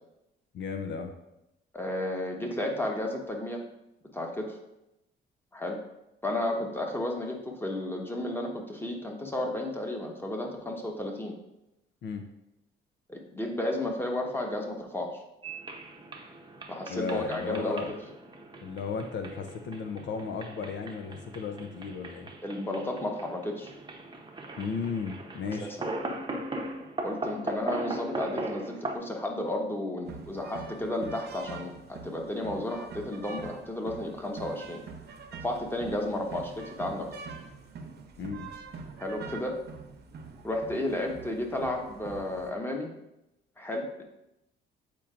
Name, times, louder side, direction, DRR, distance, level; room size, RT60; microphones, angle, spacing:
voice 1, 0.5-1.1 12.0-12.3 16.9-18.0 18.6-22.3 24.6-25.7 38.2-38.5, left 5 dB, 65° left, 5 dB, 0.6 m, -35 dB
voice 2, 1.7-3.6 4.1-4.6 5.5-5.8 6.2-11.3 13.1-15.2 16.7-17.8 22.4-23.7 25.6-25.8 27.0-34.8 35.4-37.1 39.0-39.6 40.4-42.9 43.6-44.0, left 1 dB, 10° left, 2 dB, 1.1 m, -33 dB
sound 1, 15.4-28.9, right 2 dB, 25° right, 0.8 m, -39 dB
sound 2, 30.1-42.5, right 4 dB, 55° right, 0.8 m, -45 dB
8.3 x 4.5 x 2.5 m, 0.89 s
cardioid pair, 90°, 20 cm